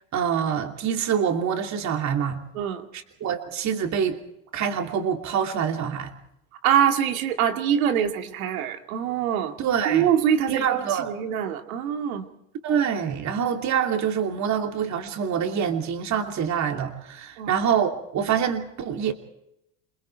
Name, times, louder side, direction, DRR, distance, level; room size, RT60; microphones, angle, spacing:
voice 1, 0.1-2.4 2.9-4.2 4.5-6.1 9.6-10.1 10.5-11.1 12.6-19.1, right 8 dB, 40° right, 5 dB, 2.9 m, -25 dB
voice 2, 2.5-2.9 6.6-12.3 17.4-17.6, right 9 dB, 85° right, 6 dB, 2.3 m, -24 dB
27.5 x 21.5 x 4.7 m, 0.81 s
supercardioid pair, 110°, 41 cm